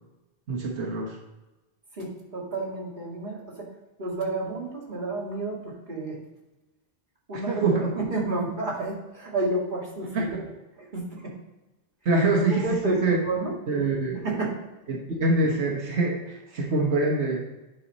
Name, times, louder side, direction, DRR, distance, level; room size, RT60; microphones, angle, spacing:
voice 1, 0.5-1.2 7.5-7.9 10.1-10.4 12.0-13.2 13.7-14.2 14.9-17.4, right 2 dB, 90° right, -1 dB, 1.5 m, -25 dB
voice 2, 2.0-3.7 4.0-6.2 7.3-7.6 7.9-10.3 10.8-11.3 12.1-12.2 12.5-13.5 14.2-14.6, right 2 dB, 45° right, -4 dB, 2.4 m, -30 dB
9.0 x 5.6 x 4.1 m, 1.1 s
omnidirectional pair, 1.1 m